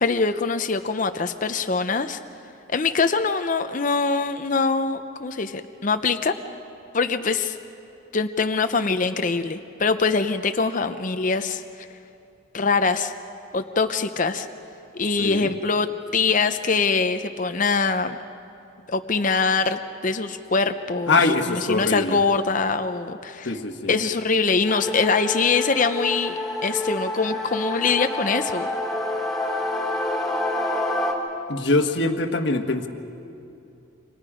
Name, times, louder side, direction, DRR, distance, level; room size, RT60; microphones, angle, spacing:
voice 1, 0.0-2.2 2.7-6.3 6.9-7.6 8.1-11.6 12.5-13.1 13.5-14.5 14.9-15.9 16.1-18.2 18.9-21.1 21.7-23.5 23.9-28.7, left 4 dB, 40° left, 8 dB, 0.6 m, -23 dB
voice 2, 15.2-15.5 21.1-22.2 23.4-23.9 31.5-32.9, left 2 dB, 60° left, 6 dB, 1.3 m, -23 dB
sound 1, 24.7-31.1, left 1 dB, ahead, 2.6 m, -28 dB
29.0 x 25.5 x 5.0 m, 2.7 s
head